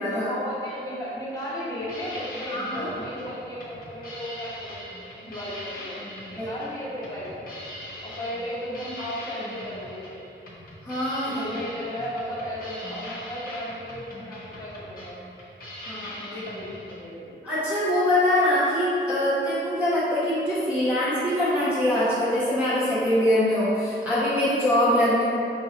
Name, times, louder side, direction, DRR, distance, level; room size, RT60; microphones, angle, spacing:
voice 1, 0.0-6.0 6.3-7.6 8.0-10.2 11.2-15.2 16.2-17.3, equal, 20° left, -11 dB, 1.2 m, -35 dB
sound 1, 1.8-17.0, left 1 dB, 45° left, 0.9 m, -41 dB
voice 2, 2.5-2.9 6.4-6.5 10.8-11.4 15.9-16.3 17.4-25.2, left 1 dB, 5° right, -13 dB, 0.7 m, -23 dB
6.0 x 2.7 x 2.8 m, 2.7 s
wide cardioid pair, 165°, 20 cm